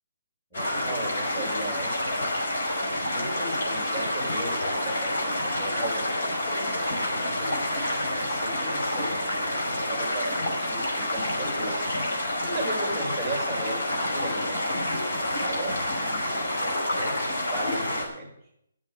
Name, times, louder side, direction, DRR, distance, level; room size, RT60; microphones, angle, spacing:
sound 1, 0.5-18.0, left 1 dB, 60° left, 5.4 m, -28 dB
voice 1, 0.5-2.2 2.9-6.1 6.8-11.9 12.4-16.1 16.3-18.4, right 1 dB, 5° left, -1 dB, 4.5 m, -37 dB
11.0 x 7.6 x 9.9 m, 0.77 s
hypercardioid pair, 170°, 0 cm